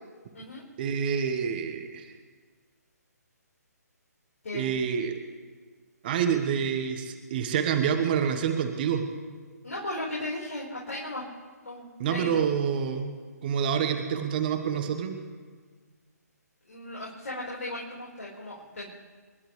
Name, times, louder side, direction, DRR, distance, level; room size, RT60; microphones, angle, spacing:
voice 1, 0.8-2.1 4.5-5.1 6.0-9.0 12.0-13.2 13.4-15.2, right 7 dB, 35° right, 6 dB, 1.4 m, -27 dB
voice 2, 9.6-11.2 11.6-12.4 16.7-18.9, left 1 dB, 55° left, -6 dB, 5.1 m, -36 dB
29.5 x 11.5 x 3.4 m, 1.5 s
figure-of-eight pair, 140°, 9 cm